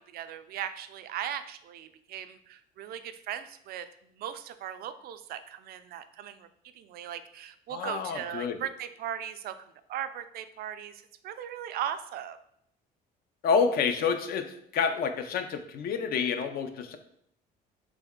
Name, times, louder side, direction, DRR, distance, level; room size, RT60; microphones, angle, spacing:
voice 1, 0.0-3.9 4.2-6.5 6.8-12.4, right 10 dB, 65° right, 11 dB, 0.4 m, -38 dB
voice 2, 7.7-8.6 13.4-14.5 14.7-17.0, left 5 dB, 65° left, 8 dB, 0.5 m, -28 dB
3.4 x 3.0 x 3.6 m, 0.70 s
cardioid pair, 110°, 17 cm